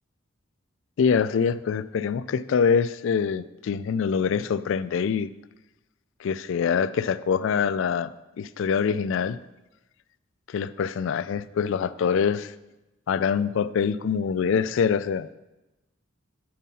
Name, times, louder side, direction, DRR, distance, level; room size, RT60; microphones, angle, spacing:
voice 1, 1.0-5.3 6.2-9.4 10.5-12.5 13.1-15.3, left 6 dB, 70° left, 15 dB, 0.3 m, -24 dB
8.4 x 5.4 x 4.2 m, 0.99 s
head